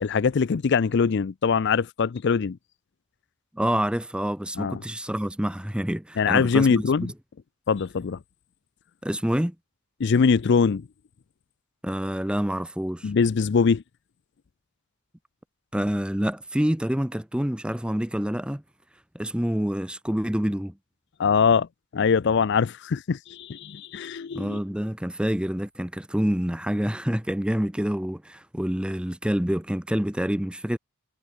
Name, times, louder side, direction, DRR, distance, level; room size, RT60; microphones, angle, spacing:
voice 1, 0.0-2.6 4.6-4.8 6.2-7.1 7.7-8.2 10.0-10.9 13.0-13.8 21.2-21.7 21.9-24.6, left 5 dB, 55° left, 0.4 m, -22 dB
voice 2, 3.5-6.8 9.0-9.5 11.8-13.1 15.7-18.6 19.1-20.7 24.3-30.8, equal, 5° right, 0.7 m, -27 dB
head